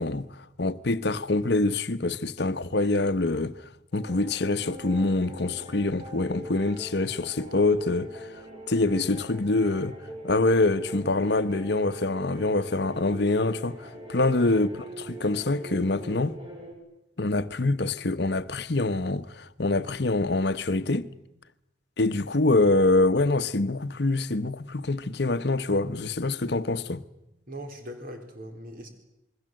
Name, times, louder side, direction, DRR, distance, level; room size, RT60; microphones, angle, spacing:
voice 1, 0.0-10.0 10.2-16.4 17.2-21.1 22.0-27.0, left 2 dB, 55° left, 1.0 m, -25 dB
sound 1, 3.9-16.7, right 1 dB, 25° right, 5.6 m, -42 dB
voice 2, 27.5-28.9, equal, 45° right, 4.0 m, -40 dB
28.0 x 21.5 x 7.7 m
head